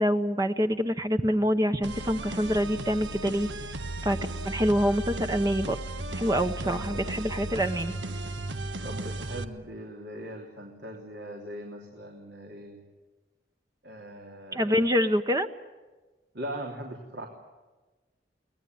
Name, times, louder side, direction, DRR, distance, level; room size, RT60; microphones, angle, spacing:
voice 1, 0.0-3.5 4.0-4.2 4.5-5.8 6.1-7.9 14.5-15.5, equal, 20° right, 7 dB, 0.8 m, -26 dB
sound 1, 1.8-9.4, right 2 dB, 90° right, 1.4 m, -35 dB
voice 2, 6.6-7.4 8.8-12.8 13.8-14.8 16.3-17.3, right 1 dB, 70° right, 1 dB, 3.3 m, -40 dB
24.0 x 19.0 x 9.3 m, 1.2 s
head